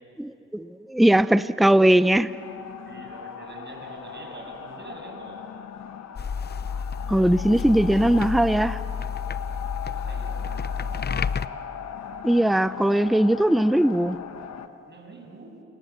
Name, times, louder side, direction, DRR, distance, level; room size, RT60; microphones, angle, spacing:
voice 1, 0.2-2.3 7.1-8.8 12.2-14.2, right 1 dB, ahead, 14 dB, 0.6 m, -20 dB
sound 1, 1.6-14.7, left 8 dB, 60° left, 1.6 m, -39 dB
voice 2, 2.9-5.5 9.8-10.4 14.9-15.7, right 2 dB, 35° right, 2 dB, 7.5 m, -44 dB
sound 2, 6.2-11.5, left 6 dB, 35° left, 0.9 m, -30 dB
29.0 x 28.0 x 7.3 m, 2.7 s
cardioid pair, 90°, 30 cm